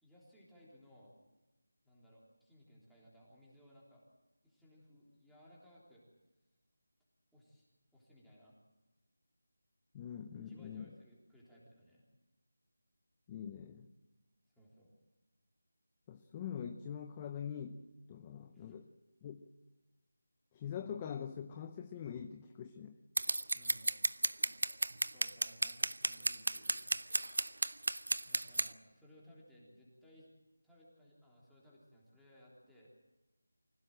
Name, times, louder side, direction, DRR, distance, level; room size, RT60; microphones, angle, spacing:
voice 1, 0.0-1.1 1.8-4.0 4.4-6.0 7.3-7.7 7.9-8.6 10.5-12.1 14.5-14.9 18.5-18.8 23.5-23.9 25.1-26.7 28.1-30.3 30.6-32.9, equal, ahead, -8 dB, 3.6 m, -61 dB
voice 2, 9.9-10.9 13.3-13.9 16.1-17.8 18.1-18.9 19.2-19.5 20.5-23.0, left 8 dB, 15° left, 7 dB, 0.6 m, -44 dB
Scissors, 23.2-28.7, right 2 dB, 75° right, 0.7 m, -33 dB
24.5 x 16.5 x 7.7 m, 1.1 s
figure-of-eight pair, 170°, 0 cm